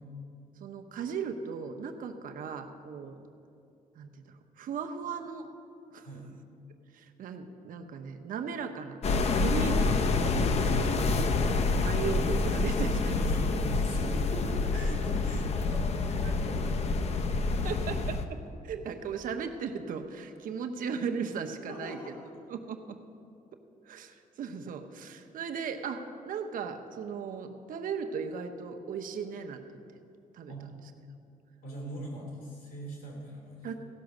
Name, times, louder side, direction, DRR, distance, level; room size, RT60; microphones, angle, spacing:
voice 1, 0.6-3.2 4.0-5.5 5.9-6.1 6.9-9.0 9.4-10.3 11.7-13.3 17.6-22.1 22.5-23.0 23.9-29.6 30.3-30.5 33.6-33.7, right 6 dB, 70° right, 5 dB, 0.9 m, -37 dB
sound 1, 9.0-18.2, left 3 dB, 45° left, 0.7 m, -27 dB
voice 2, 13.0-17.7 21.7-22.3 30.5-30.6 31.6-33.7, equal, 80° left, -2 dB, 3.5 m, -41 dB
16.0 x 6.0 x 6.5 m, 2.6 s
cardioid pair, 130°, 15 cm